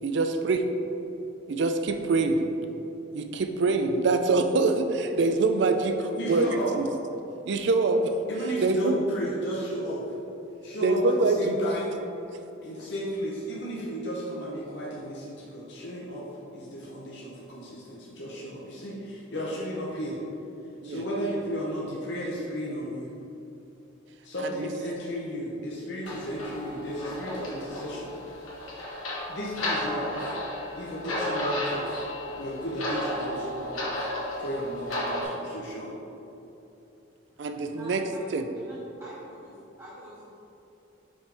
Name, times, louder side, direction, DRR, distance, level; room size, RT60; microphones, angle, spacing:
voice 1, 0.0-0.6 1.5-2.4 3.1-6.5 6.7-6.9 7.5-8.1 8.6-8.9 10.8-11.6 20.8-21.0 24.4-24.7 37.4-38.0 38.3-38.4, right 3 dB, 60° right, 7 dB, 0.4 m, -24 dB
voice 2, 6.2-6.7 8.3-10.1 10.6-12.0 12.6-20.2 20.8-23.1 24.2-28.1 29.3-30.3 30.8-32.0 32.4-34.1 34.4-35.9, equal, 55° left, -6 dB, 0.8 m, -34 dB
sound 1, 26.0-35.2, left 1 dB, 90° left, 1.4 m, -33 dB
voice 3, 37.3-40.4, equal, 20° right, -10 dB, 1.4 m, -47 dB
5.3 x 5.2 x 3.4 m, 3.0 s
head